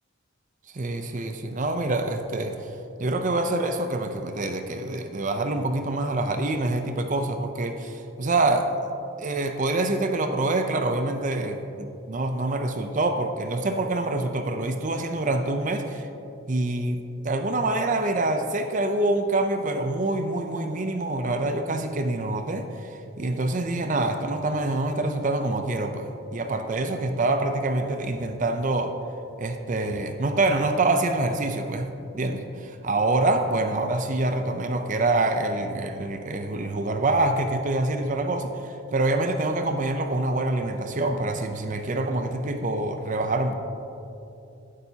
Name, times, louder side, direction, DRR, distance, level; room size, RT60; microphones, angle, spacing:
voice 1, 0.7-2.7 3.0-8.7 9.2-16.1 16.5-22.9 23.2-29.0 29.4-31.9 32.1-43.5, right 2 dB, 40° right, 7 dB, 0.5 m, -26 dB
12.0 x 10.0 x 2.8 m, 2.8 s
head